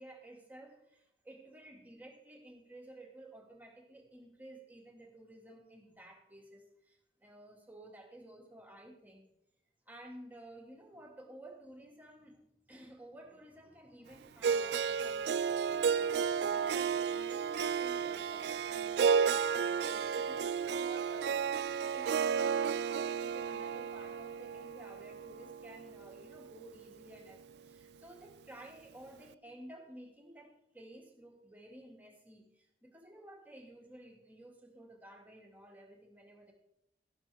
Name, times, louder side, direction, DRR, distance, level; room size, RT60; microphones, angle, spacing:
voice 1, 0.0-9.3 9.9-36.5, right 1 dB, 10° right, 0 dB, 1.9 m, -54 dB
Harp, 14.4-26.6, right 6 dB, 75° right, 0.3 m, -33 dB
13.5 x 12.0 x 3.5 m, 0.81 s
head